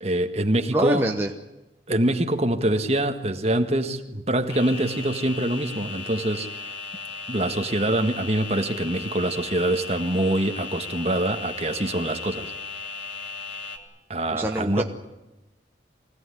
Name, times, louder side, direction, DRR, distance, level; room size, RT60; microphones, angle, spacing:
voice 1, 0.0-1.1 1.9-6.7 7.3-12.5 14.1-14.8, right 1 dB, 35° right, 6 dB, 1.7 m, -24 dB
voice 2, 0.7-1.3 14.3-14.8, right 1 dB, 10° right, 2 dB, 1.1 m, -24 dB
sound 1, 4.5-13.8, left 4 dB, 75° left, 3.0 m, -36 dB
24.5 x 17.0 x 9.9 m, 1.0 s
head